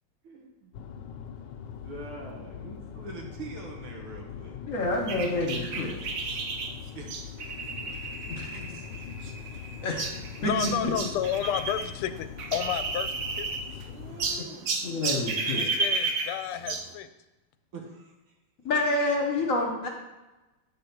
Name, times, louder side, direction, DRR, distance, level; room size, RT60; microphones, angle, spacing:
voice 1, 0.2-0.8 1.6-4.6 7.0-7.4 9.8-9.9 13.9-14.7 17.7-18.1, right 3 dB, 90° right, 0 dB, 2.3 m, -44 dB
sound 1, 0.7-14.4, left 8 dB, 70° left, 1.2 m, -42 dB
voice 2, 4.7-6.0 8.3-8.8 9.8-10.0 10.4-10.7 14.8-15.7 18.6-19.9, left 2 dB, 50° left, 1 dB, 1.1 m, -28 dB
sound 2, 5.1-11.9 12.2-13.8 14.2-16.9, right 3 dB, 70° right, 0.8 m, -32 dB
voice 3, 10.4-13.5 15.5-17.1, left 10 dB, 90° left, 11 dB, 1.5 m, -31 dB
8.5 x 3.8 x 5.9 m, 1.1 s
omnidirectional pair, 2.4 m